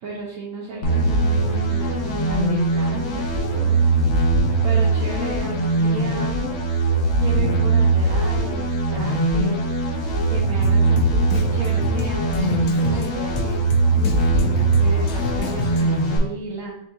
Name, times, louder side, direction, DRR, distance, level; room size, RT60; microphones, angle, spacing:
voice 1, 0.0-3.9 4.6-6.4 7.2-9.7 10.1-13.6 14.0-16.7, right 3 dB, 60° right, -4 dB, 1.1 m, -34 dB
sound 1, 0.8-16.2, right 3 dB, 50° left, 1.1 m, -20 dB
Drum kit, 10.6-16.1, left 3 dB, 75° left, 0.7 m, -30 dB
7.2 x 2.8 x 2.3 m, 0.75 s
omnidirectional pair, 1.8 m